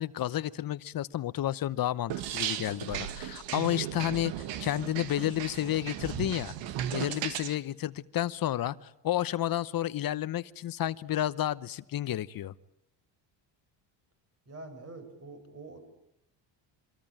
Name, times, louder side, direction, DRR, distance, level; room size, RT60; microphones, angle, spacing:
voice 1, 0.0-6.5 6.9-12.5, left 12 dB, 50° left, 16 dB, 1.0 m, -31 dB
sound 1, 2.1-7.5, right 11 dB, 85° right, 2.0 m, -36 dB
voice 2, 14.5-15.8, right 3 dB, 35° right, 7 dB, 7.4 m, -45 dB
26.0 x 23.5 x 9.0 m, 0.80 s
cardioid pair, 110°, 44 cm